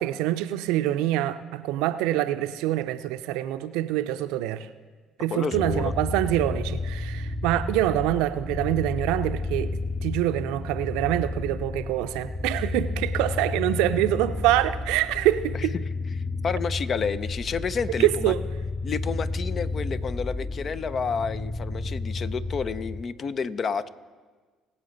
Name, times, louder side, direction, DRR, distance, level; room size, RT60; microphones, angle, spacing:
voice 1, 0.0-4.7 5.2-9.7 10.0-15.7 18.0-18.4, right 14 dB, 75° right, 12 dB, 0.5 m, -25 dB
voice 2, 5.3-5.9 16.4-18.3 18.8-23.9, left 5 dB, 45° left, 15 dB, 0.6 m, -30 dB
sound 1, 5.5-23.0, left 3 dB, 25° left, 1.0 m, -31 dB
21.5 x 7.5 x 3.9 m, 1.5 s
hypercardioid pair, 50°, 0 cm